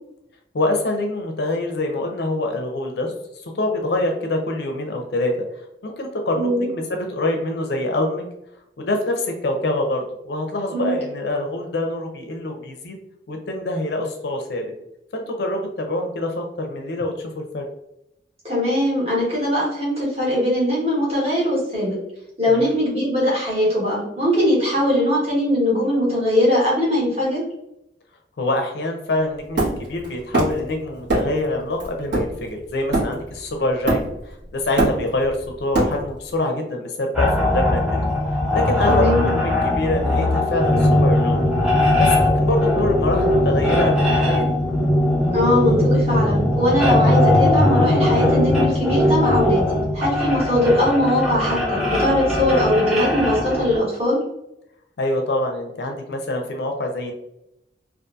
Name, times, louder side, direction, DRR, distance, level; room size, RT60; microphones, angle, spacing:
voice 1, 0.5-3.1 3.5-5.3 5.8-8.2 8.8-12.9 13.3-14.7 15.1-17.7 22.6-22.8 28.4-34.0 34.5-38.0 38.5-41.5 42.0-44.5 55.0-57.1, left 2 dB, 60° left, 3 dB, 0.4 m, -25 dB
voice 2, 6.3-6.7 10.7-10.9 18.4-22.0 22.4-27.4 38.9-39.3 45.3-54.2, left 1 dB, 35° right, -6 dB, 1.1 m, -20 dB
Hammer, 29.6-30.7 31.1-31.4 31.8-33.4 33.9-34.3 34.6-36.3, right 2 dB, 70° right, 1.0 m, -23 dB
sound 1, 37.1-53.8, left 1 dB, 5° right, 0.6 m, -19 dB
2.6 x 2.4 x 2.3 m, 0.84 s
head